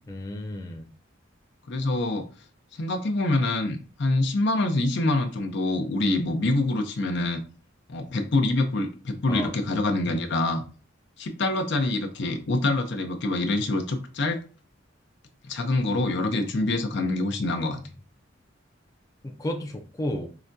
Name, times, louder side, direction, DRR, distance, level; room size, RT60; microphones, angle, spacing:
voice 1, 0.1-0.9 9.3-9.5 10.0-10.2 19.2-20.3, left 1 dB, 20° left, 3 dB, 0.4 m, -33 dB
voice 2, 1.7-2.2 2.8-7.4 7.9-10.6 11.2-14.4 15.5-17.8, left 2 dB, 65° left, 5 dB, 0.6 m, -25 dB
4.8 x 2.2 x 2.6 m, 0.36 s
head